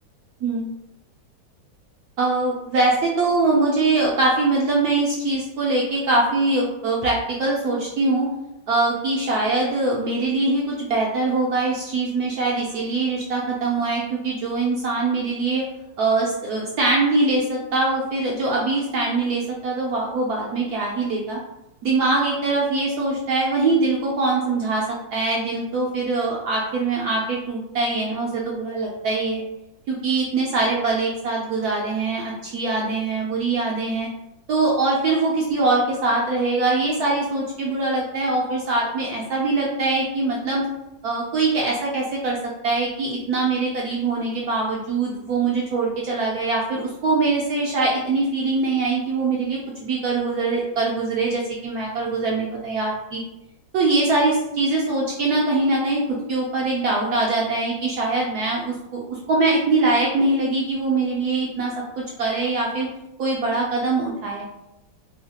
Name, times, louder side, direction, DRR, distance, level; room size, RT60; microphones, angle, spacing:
voice 1, 2.2-8.3 8.7-15.6 16.0-21.4 21.8-24.8 25.1-29.4 29.9-34.1 34.5-40.6 41.0-42.4 42.6-53.2 53.7-62.9 63.2-64.4, right 3 dB, 75° right, -3 dB, 0.9 m, -23 dB
3.1 x 2.8 x 2.7 m, 0.91 s
omnidirectional pair, 2.1 m